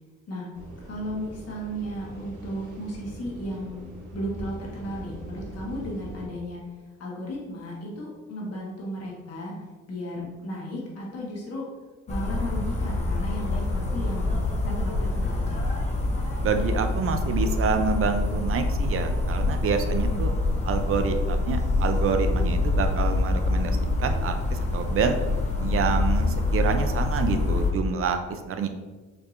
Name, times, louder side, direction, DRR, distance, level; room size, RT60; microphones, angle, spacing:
sound 1, 0.5-6.3, right 1 dB, 85° right, 0.9 m, -41 dB
voice 1, 0.9-6.6 7.0-9.5 9.9-11.7 12.1-14.4 14.6-15.7 20.0-20.2, equal, 55° left, -4 dB, 1.3 m, -35 dB
sound 2, 12.1-27.7, left 2 dB, 25° left, 0.7 m, -26 dB
sound 3, 15.5-22.9, equal, 20° right, 0.8 m, -36 dB
voice 2, 16.4-20.3 20.6-25.2 25.6-28.7, right 5 dB, 45° right, 7 dB, 0.4 m, -27 dB
4.6 x 2.7 x 2.5 m, 1.3 s
cardioid pair, 90°, 30 cm